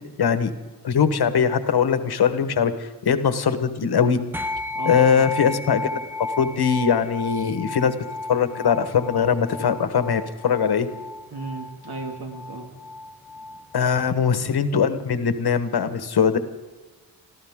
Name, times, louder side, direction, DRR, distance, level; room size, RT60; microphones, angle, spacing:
voice 1, 0.2-0.5 0.8-4.2 4.8-5.9 6.4-7.9 8.3-10.9 13.7-16.4, left 7 dB, 75° left, 10 dB, 1.3 m, -21 dB
sound 1, 4.3-14.0, left 2 dB, 5° right, 1.0 m, -33 dB
voice 2, 4.7-5.3 11.3-12.7 14.0-14.4, right 3 dB, 75° right, 3 dB, 2.3 m, -35 dB
27.5 x 14.0 x 3.7 m, 1.2 s
wide cardioid pair, 115°, 39 cm